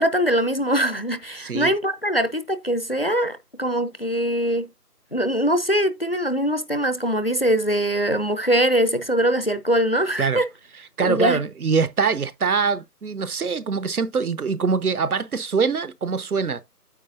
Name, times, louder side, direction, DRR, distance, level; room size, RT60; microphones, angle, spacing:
voice 1, 0.0-4.7 5.1-10.5 11.0-11.4, equal, 40° left, 0.6 m, -22 dB
voice 2, 1.4-1.7 10.2-10.4 11.0-16.6, right 5 dB, 65° right, 0.8 m, -23 dB
9.3 x 7.0 x 2.5 m
figure-of-eight pair, 175°, 47 cm